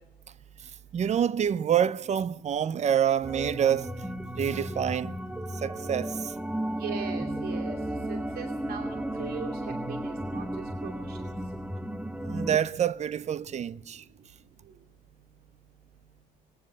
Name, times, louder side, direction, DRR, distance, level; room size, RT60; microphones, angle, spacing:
voice 1, 0.9-4.0 4.4-5.2 5.5-6.3 12.2-14.0, right 9 dB, 40° right, 0.7 m, -27 dB
sound 1, 3.2-12.6, right 1 dB, 5° right, 1.1 m, -34 dB
voice 2, 6.8-7.8 8.1-9.5 9.9-10.5 10.8-11.2, right 7 dB, 65° right, 2.6 m, -39 dB
20.5 x 18.5 x 7.7 m
cardioid pair, 110°, 17 cm